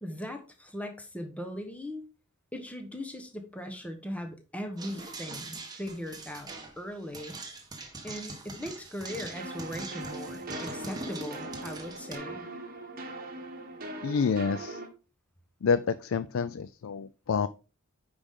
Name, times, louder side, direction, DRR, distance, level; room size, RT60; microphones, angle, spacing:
voice 1, 0.0-2.0 2.5-6.5 6.8-7.4 8.0-12.4, equal, 5° left, 5 dB, 1.1 m, -39 dB
sound 1, 4.8-12.1, right 3 dB, 20° right, 1.5 m, -43 dB
sound 2, 9.1-14.9, right 2 dB, 40° right, 1.5 m, -40 dB
voice 2, 14.0-14.8 15.6-17.5, left 5 dB, 65° left, 15 dB, 0.4 m, -28 dB
9.8 x 5.1 x 3.7 m, 0.32 s
head